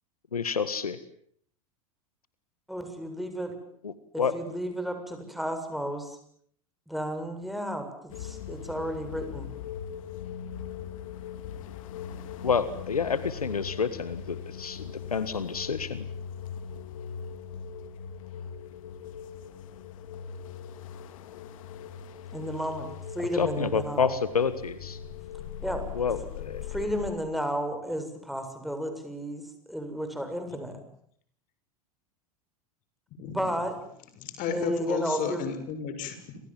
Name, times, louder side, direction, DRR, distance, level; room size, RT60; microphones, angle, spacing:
voice 1, 0.3-1.0 3.8-4.3 12.4-16.0 23.2-25.0 25.9-26.6, left 6 dB, 90° left, 14 dB, 1.7 m, -29 dB
voice 2, 2.7-3.6 4.1-6.2 6.9-9.5 22.3-22.9 23.1-24.1 25.6-25.9 26.7-30.8 33.3-33.7 34.5-35.4, equal, ahead, 6 dB, 7.3 m, -32 dB
sound 1, 8.1-27.1, left 8 dB, 65° left, 2.9 m, -40 dB
voice 3, 33.2-33.5 34.2-36.4, left 7 dB, 45° left, 10 dB, 6.6 m, -33 dB
29.5 x 26.5 x 7.6 m, 0.65 s
hypercardioid pair, 90°, 18 cm